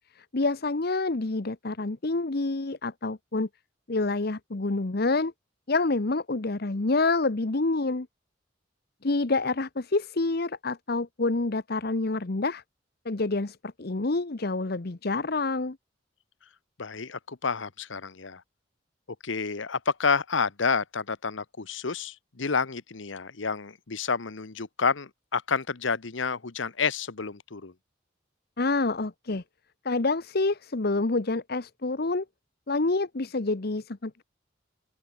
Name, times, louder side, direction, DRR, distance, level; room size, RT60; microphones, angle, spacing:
voice 1, 0.1-3.5 3.9-5.3 5.7-8.1 9.0-12.6 13.0-15.8 28.6-29.4 29.8-32.2 32.7-34.2, left 3 dB, 55° left, 1.0 m, -27 dB
voice 2, 16.8-18.4 19.2-27.7, left 5 dB, 85° left, 1.1 m, -29 dB
head